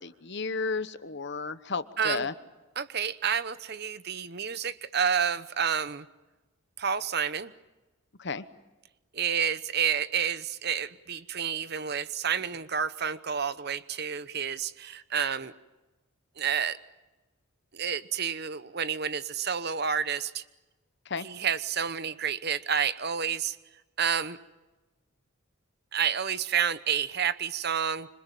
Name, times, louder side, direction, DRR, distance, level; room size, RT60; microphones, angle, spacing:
voice 1, 0.0-2.3 8.2-8.4 21.1-21.3, left 4 dB, 55° left, 13 dB, 1.1 m, -33 dB
voice 2, 2.0-2.3 2.8-6.1 6.8-7.5 9.1-15.5 16.4-16.8 17.7-20.4 21.2-23.6 24.0-24.4 25.9-28.1, right 7 dB, 50° right, 14 dB, 0.9 m, -29 dB
26.5 x 26.0 x 7.6 m, 1.1 s
head